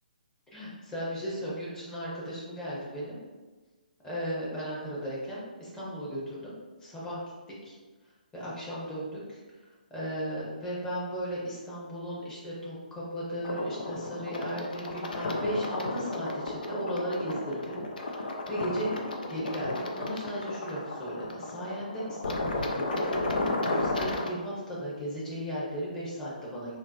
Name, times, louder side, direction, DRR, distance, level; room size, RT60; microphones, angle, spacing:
voice 1, 0.5-3.2 4.0-6.5 6.8-7.2 7.6-7.8 8.3-9.4 9.9-19.0 19.3-26.8, equal, 10° left, -7 dB, 0.9 m, -36 dB
sound 1, 13.4-24.3, left 2 dB, 75° left, 0.4 m, -33 dB
3.6 x 2.1 x 2.7 m, 1.3 s
figure-of-eight pair, 135°, 5 cm